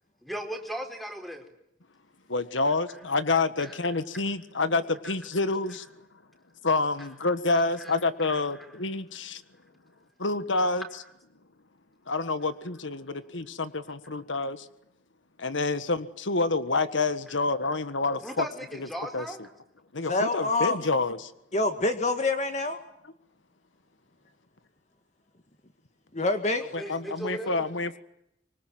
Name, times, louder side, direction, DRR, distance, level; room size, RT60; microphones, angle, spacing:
voice 1, 0.2-1.5 3.6-3.7 7.8-8.0 10.5-10.7 17.3-17.4 18.2-19.4 26.6-27.5, right 1 dB, ahead, 4 dB, 4.2 m, -37 dB
voice 2, 2.3-5.9 6.6-9.4 10.2-10.8 12.1-14.7 15.4-18.5 18.8-18.9 19.1-19.2 19.9-21.3 26.7-28.0, left 3 dB, 85° left, 12 dB, 1.5 m, -28 dB
voice 3, 20.1-20.8 21.5-22.8 26.1-26.6, left 2 dB, 35° left, 6 dB, 2.0 m, -26 dB
26.0 x 24.5 x 9.3 m, 0.81 s
head